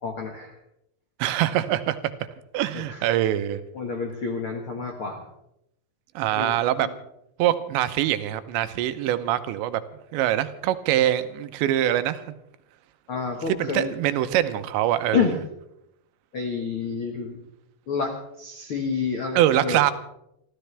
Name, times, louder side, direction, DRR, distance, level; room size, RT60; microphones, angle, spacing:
voice 1, 0.0-0.6 2.7-3.0 3.7-5.2 6.3-6.9 13.1-13.9 15.1-15.4 16.3-17.4 17.9-19.8, left 5 dB, 70° left, 2 dB, 1.3 m, -29 dB
voice 2, 1.2-2.0 2.5-3.6 6.2-6.9 7.4-9.8 10.1-12.2 13.5-15.4 19.4-19.9, right 12 dB, 80° right, 11 dB, 3.1 m, -23 dB
28.5 x 13.5 x 3.4 m, 0.79 s
omnidirectional pair, 5.2 m